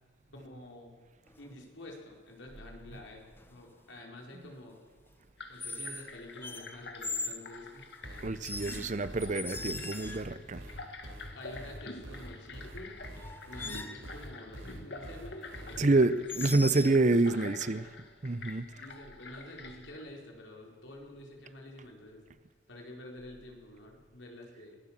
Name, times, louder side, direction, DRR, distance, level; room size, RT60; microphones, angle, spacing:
voice 1, 0.3-1.0 1.4-4.8 5.5-7.9 8.2-8.4 11.3-13.0 13.5-16.2 16.5-16.9 17.3-17.4 17.8-17.9 18.8-22.3 22.7-24.8, left 1 dB, 80° left, 4.7 m, -48 dB
sound 1, 1.3-1.6 3.4-3.7 5.6-6.1 6.4-7.4 8.4-10.4 12.6-12.7 13.1-14.0 16.3-17.0, left 2 dB, 10° left, 1.0 m, -40 dB
sound 2, 5.4-20.0, left 3 dB, 60° left, 2.0 m, -47 dB
sound 3, 8.0-15.8, right 1 dB, 80° right, 3.9 m, -45 dB
voice 2, 8.2-10.6 15.8-17.9 18.2-18.7, right 2 dB, 40° right, 0.7 m, -27 dB
22.5 x 16.0 x 7.5 m
head